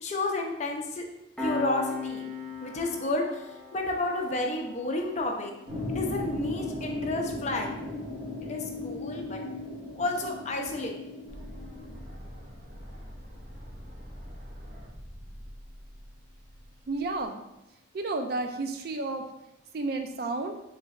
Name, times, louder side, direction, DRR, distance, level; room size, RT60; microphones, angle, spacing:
voice 1, 0.0-1.1 1.4-2.3 2.6-3.4 3.7-5.5 5.9-7.7 8.4-9.4 10.0-10.9, left 2 dB, 35° left, 1 dB, 0.5 m, -31 dB
Piano, 1.4-12.5, left 4 dB, 5° left, 0.7 m, -42 dB
sound 1, 5.7-12.0, left 2 dB, 15° right, 1.3 m, -37 dB
sound 2, 11.3-17.3, equal, 35° right, 0.8 m, -45 dB
voice 2, 16.9-17.4 17.9-19.3 19.7-20.5, right 3 dB, 50° right, 6 dB, 0.4 m, -31 dB
3.3 x 3.0 x 3.6 m, 0.92 s
head